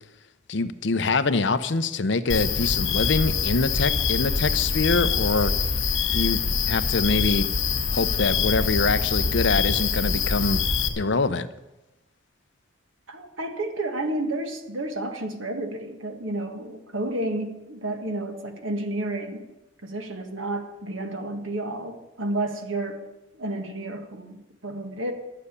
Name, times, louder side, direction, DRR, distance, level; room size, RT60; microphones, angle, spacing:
voice 1, 0.5-5.5 6.1-7.5 7.9-10.6 11.0-11.5, left 3 dB, 60° left, 11 dB, 0.7 m, -24 dB
sound 1, 2.3-10.9, left 5 dB, 80° left, 1.9 m, -24 dB
voice 2, 13.1-19.5 19.8-23.1 23.3-24.4 24.6-25.1, right 1 dB, 75° right, 5 dB, 1.7 m, -31 dB
12.0 x 6.8 x 9.8 m, 0.99 s
head